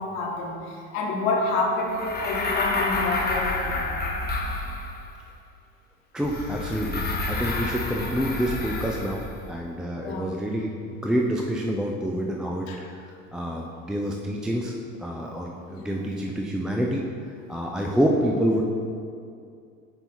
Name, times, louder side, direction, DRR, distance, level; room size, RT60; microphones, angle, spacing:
voice 1, 0.0-4.0 10.0-10.3 12.7-12.8 15.7-16.0 17.9-18.0, left 3 dB, 70° left, 0 dB, 1.1 m, -28 dB
sound 1, 1.9-5.1 6.2-9.4, left 2 dB, 25° left, 1.1 m, -29 dB
voice 2, 6.1-12.7 13.3-17.0 17.5-18.6, equal, ahead, -1 dB, 0.4 m, -27 dB
sound 2, 6.2-9.6, right 1 dB, 90° right, 1.4 m, -44 dB
5.3 x 4.6 x 4.3 m, 2.4 s
hypercardioid pair, 75°, 39 cm